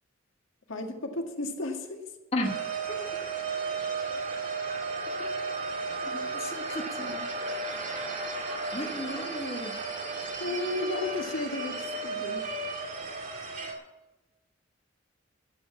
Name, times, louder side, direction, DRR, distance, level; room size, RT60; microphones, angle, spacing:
voice 1, 0.7-2.0 10.4-12.4, left 1 dB, 80° left, 3 dB, 1.8 m, -34 dB
sound 1, 2.4-13.7, right 3 dB, 40° right, 2.2 m, -34 dB
voice 2, 6.1-7.3 8.7-9.8, left 1 dB, 30° left, 2 dB, 1.4 m, -34 dB
12.5 x 8.1 x 7.3 m, 1.1 s
head